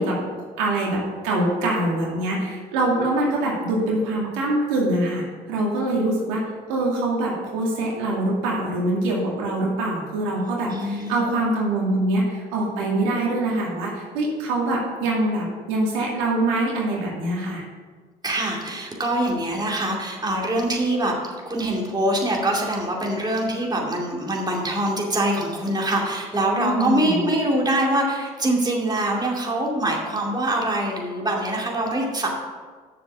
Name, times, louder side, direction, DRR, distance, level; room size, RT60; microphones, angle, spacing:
voice 1, 0.0-6.4 6.7-17.6 26.6-27.3, right 2 dB, 85° right, -3 dB, 2.3 m, -24 dB
voice 2, 10.7-11.2 18.2-32.3, right 1 dB, 20° right, -1 dB, 2.4 m, -24 dB
7.3 x 6.9 x 7.0 m, 1.5 s
supercardioid pair, 70°, 19 cm